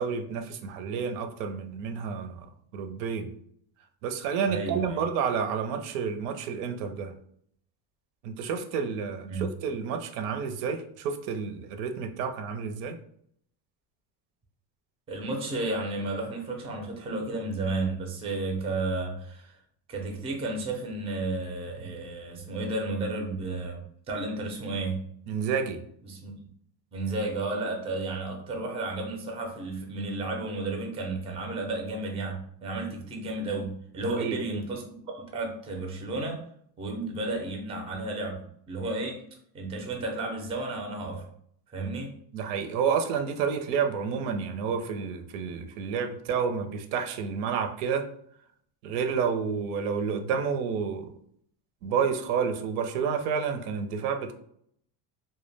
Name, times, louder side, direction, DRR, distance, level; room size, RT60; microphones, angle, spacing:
voice 1, 0.0-2.5 2.7-3.3 4.0-7.1 8.2-13.0 21.8-21.9 25.3-25.8 34.0-34.6 42.3-48.1 48.8-51.1 51.8-54.3, right 6 dB, 90° right, 7 dB, 0.6 m, -30 dB
voice 2, 4.5-5.0 9.3-9.4 15.1-19.6 19.9-23.8 24.1-25.0 26.0-26.3 26.9-34.8 35.1-36.4 36.8-39.2 39.5-41.3 41.7-42.1, right 2 dB, 15° right, 2 dB, 0.3 m, -32 dB
2.2 x 2.1 x 3.2 m, 0.66 s
cardioid pair, 130°, 46 cm